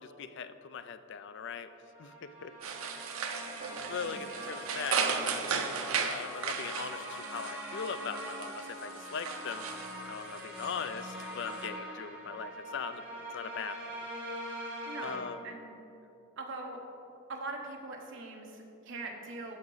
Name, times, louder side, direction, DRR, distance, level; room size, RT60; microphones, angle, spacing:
voice 1, 0.0-1.7 2.0-2.5 3.9-5.1 5.3-9.7 10.1-13.0 13.3-14.1 15.0-15.4, left 6 dB, 60° left, 11 dB, 0.4 m, -40 dB
sound 1, 1.8-15.2, equal, 5° right, 1.7 m, -43 dB
sound 2, 2.6-11.7, right 5 dB, 85° right, 0.7 m, -36 dB
voice 2, 4.0-4.3 14.8-15.7 16.4-16.8 17.3-19.6, right 2 dB, 60° right, 1 dB, 1.2 m, -42 dB
13.5 x 5.2 x 4.0 m, 2.8 s
head